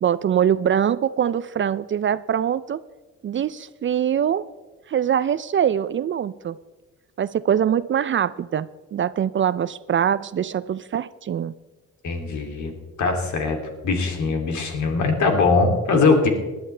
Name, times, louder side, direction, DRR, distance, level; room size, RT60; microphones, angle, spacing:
voice 1, 0.0-2.8 3.2-4.5 4.9-6.6 7.2-11.5, right 9 dB, 40° right, 16 dB, 0.4 m, -23 dB
voice 2, 12.0-12.7 13.0-13.6 13.8-16.3, left 4 dB, 70° left, 3 dB, 2.8 m, -21 dB
20.0 x 11.5 x 3.3 m, 1.2 s
cardioid pair, 90°, 30 cm